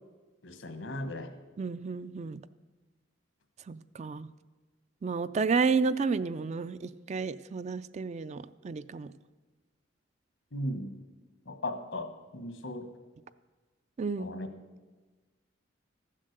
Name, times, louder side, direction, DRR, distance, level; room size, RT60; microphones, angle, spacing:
voice 1, 0.4-1.3 10.5-10.9 11.5-12.1 12.3-12.9 14.2-14.5, left 1 dB, 80° left, 8 dB, 1.3 m, -36 dB
voice 2, 1.6-2.4 3.7-4.3 5.0-9.1 14.0-14.3, right 4 dB, 35° right, 14 dB, 0.3 m, -31 dB
14.5 x 7.5 x 6.6 m, 1.3 s
head